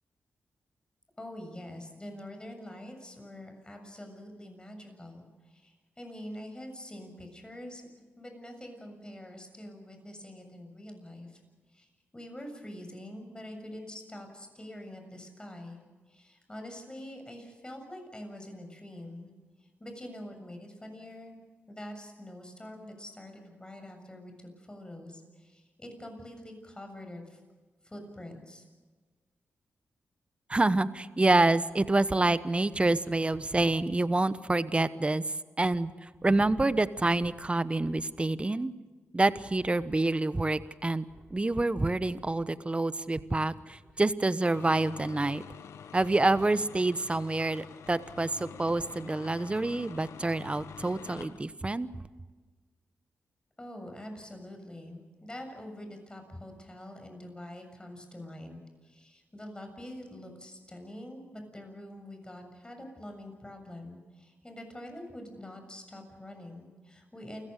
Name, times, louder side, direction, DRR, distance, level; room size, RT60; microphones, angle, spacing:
voice 1, 1.2-7.8 8.2-11.4 11.7-11.9 12.1-15.8 16.1-19.3 19.6-21.4 21.7-27.4 27.8-28.6 53.6-67.5, left 1 dB, 20° left, 4 dB, 7.2 m, -45 dB
voice 2, 30.5-35.2 35.6-38.7 39.1-45.4 45.9-51.9, right 2 dB, 25° right, 14 dB, 1.1 m, -27 dB
sound 1, 44.5-51.4, left 7 dB, 80° left, 1.1 m, -47 dB
28.5 x 16.0 x 6.6 m, 1.4 s
cardioid pair, 55°, 5 cm